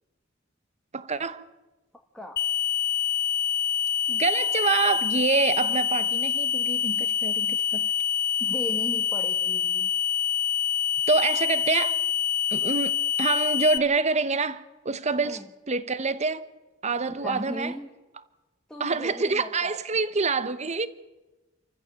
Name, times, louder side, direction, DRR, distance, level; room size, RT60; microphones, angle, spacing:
voice 1, 0.9-1.5 4.1-7.9 11.1-12.0 12.5-16.5 16.8-17.7 18.8-20.9, right 4 dB, 35° right, 0.9 m, -26 dB
sound 1, 2.4-13.8, left 8 dB, 50° left, 0.8 m, -26 dB
voice 2, 8.4-9.9 15.2-15.5 17.1-17.9 18.7-20.0, equal, 5° left, 1.6 m, -37 dB
28.0 x 14.5 x 7.5 m
head